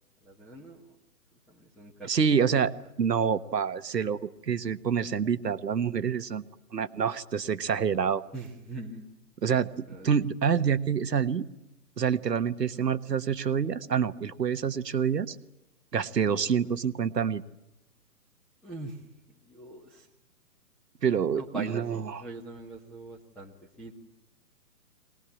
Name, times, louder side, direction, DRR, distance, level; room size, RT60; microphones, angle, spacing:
voice 1, 0.2-0.9 1.5-2.3 8.3-9.0 9.4-9.6 9.9-10.2 12.7-12.9 16.3-16.7 18.6-19.0 19.4-20.1 21.3-23.9, right 2 dB, ahead, -1 dB, 1.1 m, -43 dB
voice 2, 2.1-2.7 3.0-6.4 6.7-8.2 9.4-11.5 12.0-15.4 15.9-17.4 21.0-22.2, right 7 dB, 85° right, 13 dB, 1.4 m, -27 dB
22.5 x 20.0 x 9.9 m, 0.89 s
hypercardioid pair, 140°, 48 cm